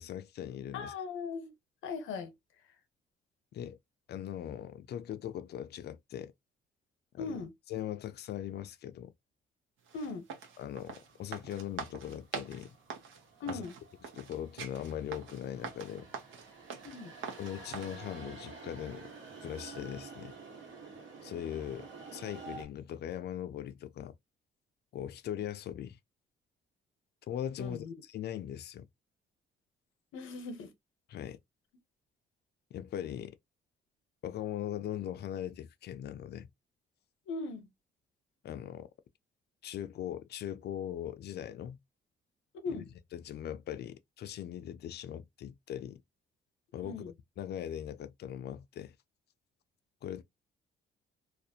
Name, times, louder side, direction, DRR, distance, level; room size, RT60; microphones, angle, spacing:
voice 1, 0.0-0.9 3.5-3.8 4.1-6.3 7.1-7.4 7.7-9.1 10.6-12.7 13.5-13.6 14.1-16.0 17.4-19.1 19.4-20.3 21.2-24.2 24.9-26.0 27.3-28.9 31.1-31.4 32.7-33.3 34.2-36.5 38.4-38.9 39.6-41.8 42.7-42.8 43.1-46.0 46.7-47.0 47.4-48.9 50.0-50.2, left 10 dB, 55° left, 0.4 m, -40 dB
voice 2, 0.7-1.5 1.8-2.3 7.2-7.5 9.9-10.3 13.4-13.7 16.8-17.1 27.6-27.9 30.1-30.7 37.3-37.7 42.5-42.9 46.8-47.1, left 4 dB, 85° left, 0.7 m, -39 dB
sound 1, 9.9-18.0, right 6 dB, 85° right, 0.7 m, -44 dB
sound 2, 11.0-22.7, right 4 dB, 70° right, 1.2 m, -50 dB
2.4 x 2.1 x 2.6 m
cardioid pair, 90°, 20 cm